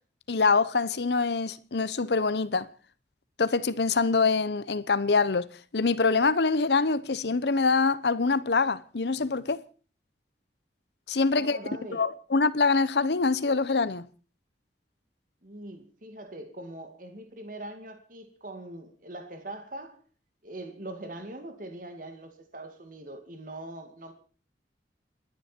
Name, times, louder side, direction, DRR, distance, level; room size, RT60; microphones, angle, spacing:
voice 1, 0.3-2.7 3.4-5.5 5.7-9.6 11.1-11.6 11.9-14.0, left 4 dB, 70° left, 0.8 m, -25 dB
voice 2, 11.3-12.1 15.4-20.0 20.4-24.1, right 1 dB, 50° right, 2.2 m, -42 dB
28.0 x 10.5 x 4.4 m
head